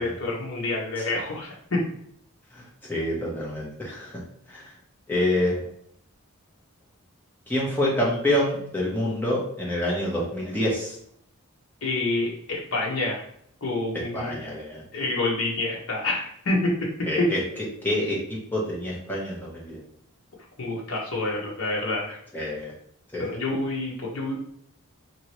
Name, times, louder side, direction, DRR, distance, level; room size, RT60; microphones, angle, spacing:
voice 1, 0.0-1.9 11.8-13.2 13.6-14.4 14.9-17.3 20.6-22.2 23.2-24.4, left 2 dB, 65° left, -3 dB, 1.0 m, -27 dB
voice 2, 2.5-4.2 4.5-4.6 5.1-5.6 7.5-11.0 13.9-14.8 17.1-19.8 22.3-22.7 23.1-23.3, left 1 dB, 10° left, -5 dB, 0.8 m, -27 dB
3.0 x 2.9 x 2.9 m, 0.68 s
head